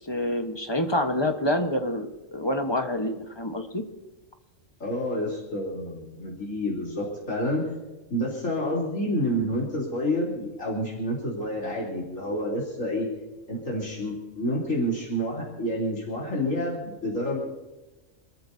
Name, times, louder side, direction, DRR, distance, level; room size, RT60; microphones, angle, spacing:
voice 1, 0.1-3.8, left 1 dB, 20° left, 5 dB, 1.2 m, -27 dB
voice 2, 4.8-7.6 8.1-13.1 13.5-17.4, equal, 75° left, -5 dB, 3.8 m, -29 dB
28.0 x 14.0 x 2.8 m, 1.1 s
omnidirectional pair, 1.4 m